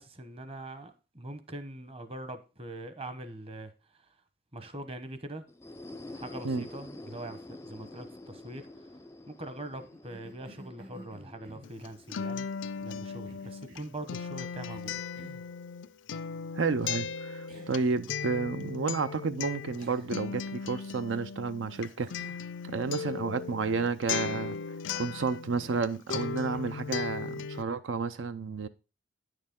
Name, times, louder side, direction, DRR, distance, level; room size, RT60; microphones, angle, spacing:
voice 1, 0.0-3.7 4.5-5.4 6.1-8.7 9.3-12.5 12.8-14.9, right 1 dB, 30° right, 1.0 m, -42 dB
sound 1, 5.5-13.1, left 1 dB, 15° left, 0.4 m, -48 dB
Cough, 9.8-12.0 12.7-14.0 14.7-15.5 16.9-17.0 17.5-17.9 18.2-18.3 19.8-20.3 20.9-21.3 21.7-23.2 23.5-24.5 24.9-25.2 25.6-25.9 26.5-27.0, equal, 50° right, 2.2 m, -53 dB
Acoustic guitar, 11.6-25.8 26.1-27.6, left 6 dB, 75° left, 0.4 m, -37 dB
voice 2, 16.5-22.3 22.6-24.6 25.0-28.7, right 4 dB, 90° right, 0.5 m, -31 dB
9.6 x 6.6 x 3.6 m
head